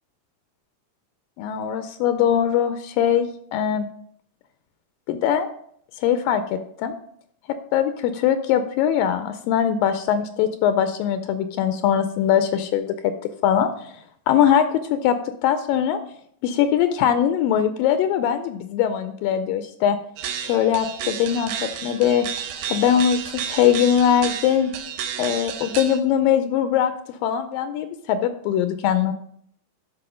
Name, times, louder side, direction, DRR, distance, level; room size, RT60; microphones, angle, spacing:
voice 1, 1.4-3.9 5.1-5.5 6.0-7.0 7.7-13.1 13.4-13.9 14.3-14.6 14.9-15.2 15.4-16.0 16.4-20.0 20.4-21.5 21.8-22.3 22.7-24.7 25.2-29.1, left 9 dB, 80° left, 10 dB, 2.2 m, -21 dB
sound 1, 20.2-26.0, right 8 dB, 90° right, 2.6 m, -32 dB
12.0 x 5.3 x 4.9 m, 0.66 s
omnidirectional pair, 4.1 m